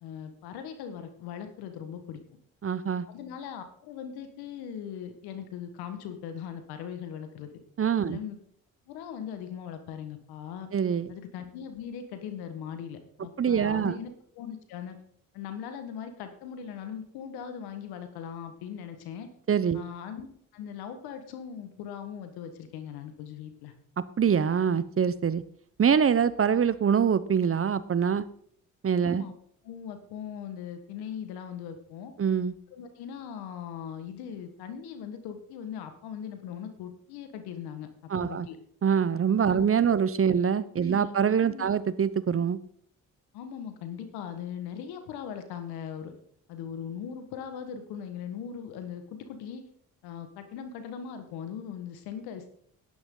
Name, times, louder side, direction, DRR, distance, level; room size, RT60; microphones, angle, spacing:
voice 1, 0.0-2.2 3.1-7.5 8.0-8.4 8.9-10.7 11.1-15.0 15.3-19.3 19.7-20.3 20.5-23.7 29.1-29.3 29.6-32.1 32.7-37.9 38.2-38.6 39.5-40.0 40.8-41.1 41.4-41.7 43.3-46.1 46.5-49.6 50.0-52.5, left 8 dB, 85° left, 8 dB, 1.6 m, -40 dB
voice 2, 2.6-3.1 7.8-8.2 10.7-11.1 13.4-14.0 19.5-19.8 24.0-25.4 25.8-28.2 28.8-29.2 32.2-32.5 38.1-38.5 38.8-42.6, right 7 dB, 35° right, 17 dB, 0.8 m, -24 dB
11.5 x 10.0 x 3.9 m, 0.62 s
supercardioid pair, 55°, 37 cm